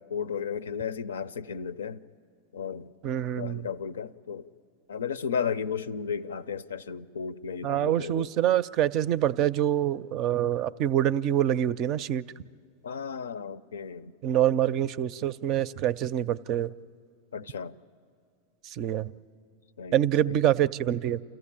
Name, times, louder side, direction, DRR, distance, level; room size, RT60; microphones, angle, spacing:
voice 1, 0.0-2.0 2.5-2.9 3.4-4.5 4.9-8.3 12.8-14.1 17.3-17.8 19.8-20.4, left 6 dB, 85° left, 0.5 m, -34 dB
voice 2, 3.0-3.7 7.6-12.3 14.2-16.7 18.6-19.1 19.9-21.2, right 11 dB, 45° right, 0.4 m, -26 dB
28.5 x 14.0 x 8.8 m
hypercardioid pair, 105°, 0 cm